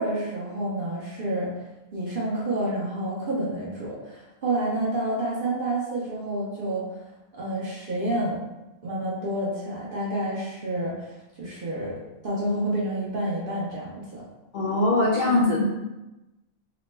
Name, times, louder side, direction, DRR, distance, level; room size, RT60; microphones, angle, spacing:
voice 1, 0.0-1.5 1.9-6.9 7.3-8.4 8.8-11.0 11.4-11.9 12.2-14.2, right 1 dB, 55° right, -6 dB, 0.7 m, -29 dB
voice 2, 14.5-15.6, left 2 dB, 60° left, -7 dB, 0.5 m, -21 dB
2.9 x 2.0 x 3.2 m, 1.0 s
omnidirectional pair, 1.4 m